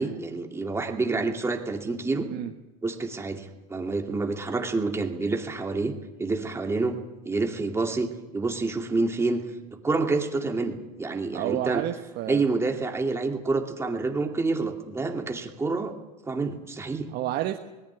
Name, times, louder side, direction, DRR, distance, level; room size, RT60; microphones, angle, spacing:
voice 1, 0.0-2.3 2.8-6.9 7.3-9.4 9.8-11.8 12.3-15.9 16.2-17.1, right 3 dB, 15° right, 4 dB, 2.4 m, -28 dB
voice 2, 11.3-12.4 17.1-17.6, right 14 dB, 55° right, 5 dB, 1.3 m, -30 dB
19.0 x 17.0 x 9.7 m, 1.1 s
supercardioid pair, 120°, 19 cm